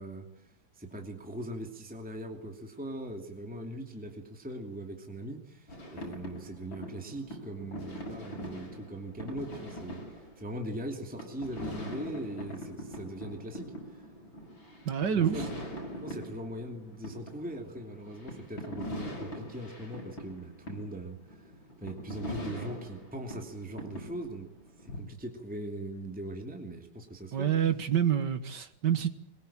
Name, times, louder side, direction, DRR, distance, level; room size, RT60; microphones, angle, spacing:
voice 1, 0.0-10.0 10.4-14.1 15.1-15.5 16.0-21.5 21.8-24.5 24.8-27.6, right 1 dB, 5° right, 2.6 m, -40 dB
sound 1, 5.7-25.0, equal, 75° left, 6.9 m, -42 dB
voice 2, 14.9-15.4 27.3-29.1, right 9 dB, 60° right, 2.1 m, -27 dB
23.0 x 21.0 x 8.8 m
omnidirectional pair, 2.1 m